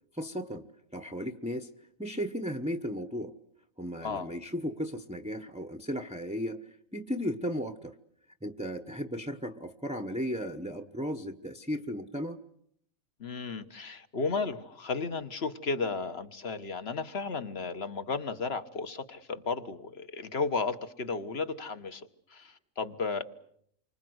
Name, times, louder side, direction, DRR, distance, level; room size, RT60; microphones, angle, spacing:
voice 1, 0.1-0.7 0.9-1.7 2.0-3.3 3.8-8.0 8.4-12.4, equal, 5° right, 9 dB, 1.0 m, -35 dB
voice 2, 13.2-23.2, left 4 dB, 50° left, 10 dB, 1.5 m, -34 dB
28.5 x 25.0 x 7.9 m, 0.70 s
omnidirectional pair, 1.5 m